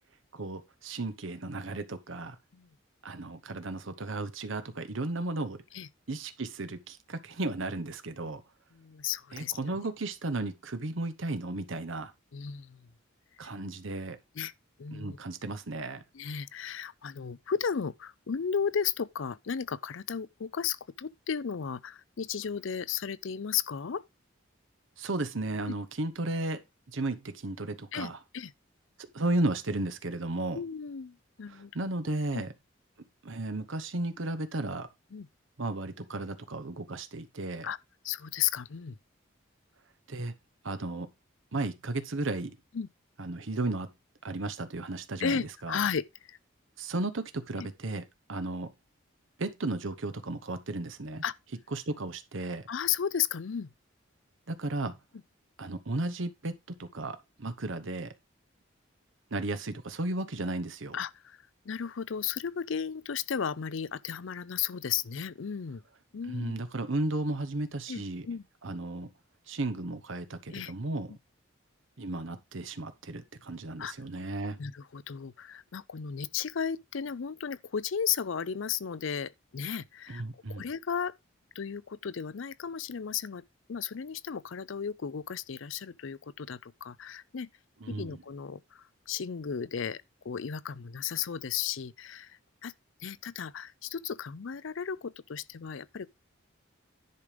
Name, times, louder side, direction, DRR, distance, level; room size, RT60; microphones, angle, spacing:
voice 1, 0.3-2.4 3.0-5.6 6.1-8.4 9.3-12.1 13.4-14.2 14.9-16.0 25.0-26.6 26.9-28.2 29.1-30.6 31.5-32.5 33.2-34.9 35.6-37.7 40.1-40.3 40.6-41.1 41.5-42.5 43.2-43.9 44.2-45.8 46.8-48.0 48.3-48.7 49.4-51.2 51.7-52.7 54.5-55.0 55.6-58.1 59.3-61.0 66.3-68.3 68.6-69.1 69.5-71.1 72.0-74.6 80.1-80.7 87.8-88.2, right 2 dB, 70° right, 1.0 m, -34 dB
voice 2, 8.7-9.6 12.3-12.9 14.4-14.5 14.8-15.2 16.1-24.0 25.7-25.8 27.9-28.5 30.5-31.9 32.3-32.4 35.1-35.3 37.6-37.8 38.0-39.0 42.7-42.9 45.2-46.4 51.2-51.3 52.7-53.7 60.9-61.4 61.7-65.8 66.1-66.6 67.9-68.4 70.5-70.7 73.8-73.9 74.6-80.2 80.5-81.1 81.6-83.4 83.7-87.5 87.9-92.7 93.0-96.1, left 7 dB, 70° left, 0.5 m, -34 dB
10.5 x 5.1 x 5.0 m
head